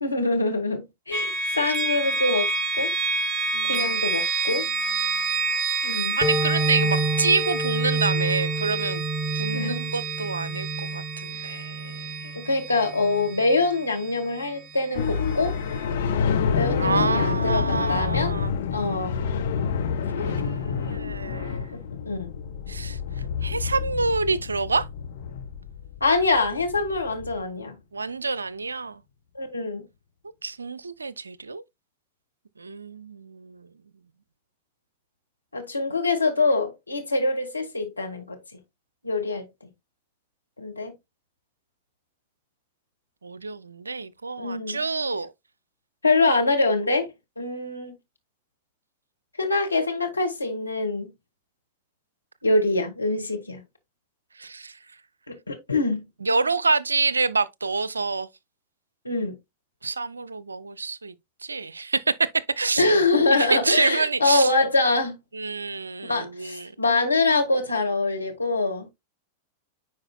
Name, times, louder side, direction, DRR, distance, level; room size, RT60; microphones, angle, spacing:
voice 1, 0.0-2.5 2.8-2.9 3.7-4.7 5.8-6.2 9.5-9.8 11.3-11.6 12.2-15.5 16.6-18.3 18.7-19.2 22.0-22.3 26.0-27.7 29.3-29.8 35.5-38.4 39.0-39.5 40.6-40.9 44.4-44.8 46.0-47.1 47.4-47.9 49.4-51.1 52.4-53.6 55.3-56.0 59.0-59.4 62.8-65.2 66.0-68.9, left 3 dB, 80° left, 1.6 m, -24 dB
sound 1, 1.1-14.9, right 4 dB, 20° right, 1.3 m, -29 dB
voice 2, 3.5-4.1 4.5-4.6 4.9-5.4 6.2-9.0 9.3-12.3 16.8-18.5 20.2-21.7 22.7-23.0 23.4-24.9 27.9-29.0 30.4-31.6 32.6-33.7 43.2-45.3 54.4-54.7 56.2-58.3 59.8-61.1 61.4-62.3 62.6-62.9 63.3-64.5 65.3-66.7, right 4 dB, 75° right, 0.4 m, -27 dB
sound 2, 6.2-13.5, right 2 dB, 5° left, 1.6 m, -29 dB
sound 3, 14.9-27.4, left 6 dB, 60° left, 1.2 m, -28 dB
9.6 x 4.7 x 2.3 m
figure-of-eight pair, 90°, 0 cm